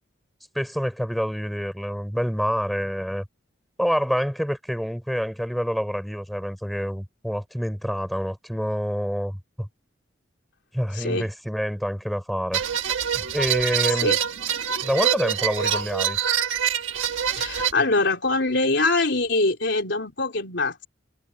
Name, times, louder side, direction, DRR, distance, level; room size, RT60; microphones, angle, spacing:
voice 1, 0.5-3.2 3.8-9.7 10.7-12.6 13.1-14.1 14.8-16.2, equal, ahead, 6.4 m, -27 dB
voice 2, 10.9-11.3 13.9-14.2 17.3-20.9, left 3 dB, 65° left, 3.6 m, -23 dB
sound 1, 12.5-17.7, right 8 dB, 85° right, 1.4 m, -25 dB
head